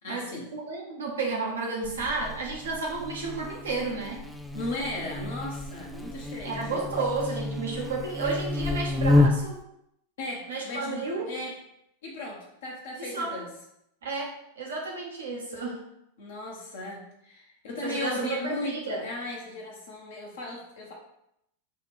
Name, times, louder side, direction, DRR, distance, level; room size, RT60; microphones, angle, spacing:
voice 1, 0.0-0.5 4.5-6.9 10.2-11.5 12.0-13.5 16.2-20.9, left 2 dB, 60° left, -2 dB, 1.0 m, -36 dB
voice 2, 0.5-4.2 6.4-9.6 10.5-11.3 13.0-13.3 14.0-15.8 17.8-19.1, right 3 dB, 65° right, -1 dB, 0.8 m, -32 dB
Buzz, 1.8-9.6, left 2 dB, ahead, 0.4 m, -29 dB
5.8 x 2.5 x 3.4 m, 0.79 s
figure-of-eight pair, 90°, 0 cm